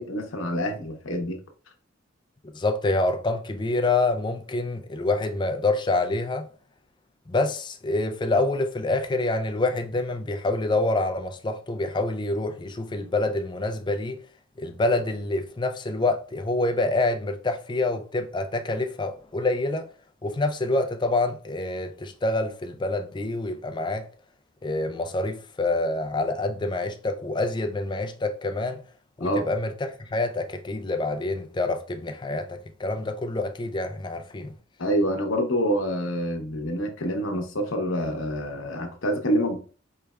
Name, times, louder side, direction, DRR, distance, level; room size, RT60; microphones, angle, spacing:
voice 1, 0.0-1.4 29.2-29.4 34.8-39.6, equal, 75° left, 0.9 m, -26 dB
voice 2, 2.5-6.5 7.3-14.2 14.6-19.9 20.2-24.1 24.6-28.8 29.2-34.5, left 2 dB, 25° left, 0.4 m, -27 dB
4.5 x 3.2 x 2.3 m
head